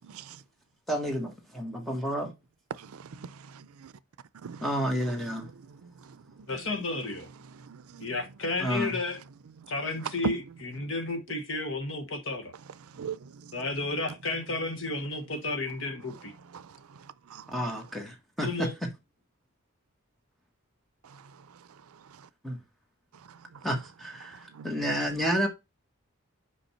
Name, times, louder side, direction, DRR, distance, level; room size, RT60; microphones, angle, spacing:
voice 1, 0.0-0.4 2.7-3.9 4.4-4.7 5.8-6.5 7.6-8.1 10.2-10.3 12.9-13.5 16.5-17.5 21.1-21.2 23.3-23.4 24.5-24.7, right 6 dB, 90° right, 0.5 m, -39 dB
voice 2, 0.9-2.3 4.6-5.5 8.6-9.0 17.5-18.9 22.4-22.6 23.6-25.5, equal, ahead, 1.4 m, -30 dB
voice 3, 6.5-7.3 8.0-9.2 9.7-12.5 13.5-16.3 18.4-18.7, left 3 dB, 60° left, 1.1 m, -32 dB
5.4 x 5.1 x 4.3 m
head